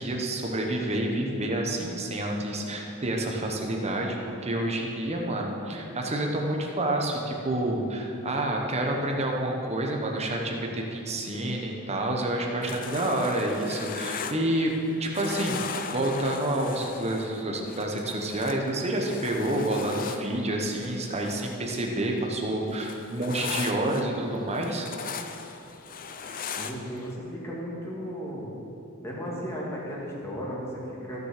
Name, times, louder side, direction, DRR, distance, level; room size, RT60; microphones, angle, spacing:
voice 1, 0.0-14.7 15.0-15.6 15.9-24.9, right 1 dB, 30° right, 1 dB, 1.2 m, -28 dB
sound 1, 12.6-14.9 15.1-21.9 22.2-27.1, left 6 dB, 40° left, 0.5 m, -38 dB
voice 2, 26.6-28.5 29.0-31.3, equal, 15° left, -5 dB, 2.2 m, -35 dB
14.5 x 6.7 x 5.1 m, 2.9 s
head